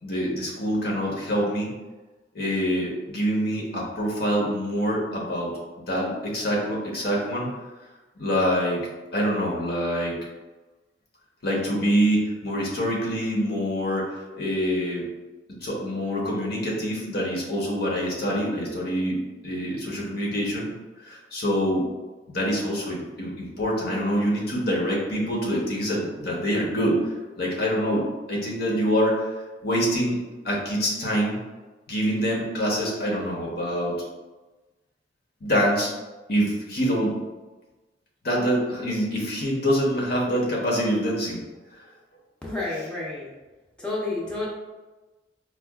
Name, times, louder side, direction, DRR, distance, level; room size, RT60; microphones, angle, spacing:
voice 1, 0.0-1.7 2.3-5.5 5.9-7.5 8.2-10.2 11.4-15.1 15.6-20.7 21.0-21.9 22.3-27.0 27.4-29.2 29.6-30.2 30.4-31.4 31.9-34.0 35.4-35.9 36.3-37.2 38.2-41.4, equal, 60° left, -3 dB, 0.8 m, -25 dB
voice 2, 42.4-43.3 43.8-44.5, left 2 dB, 5° left, -7 dB, 0.6 m, -30 dB
4.6 x 2.3 x 2.3 m, 1.2 s
head